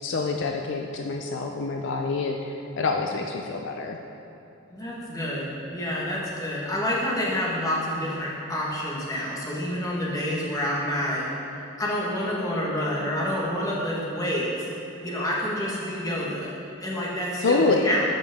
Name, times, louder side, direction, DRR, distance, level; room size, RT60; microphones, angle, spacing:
voice 1, 0.0-4.0 17.4-17.9, left 3 dB, 60° left, 2 dB, 0.4 m, -26 dB
voice 2, 4.7-11.2 11.8-14.5 15.0-16.5 16.8-18.0, equal, 15° left, -5 dB, 1.3 m, -28 dB
12.5 x 5.3 x 3.5 m, 2.9 s
head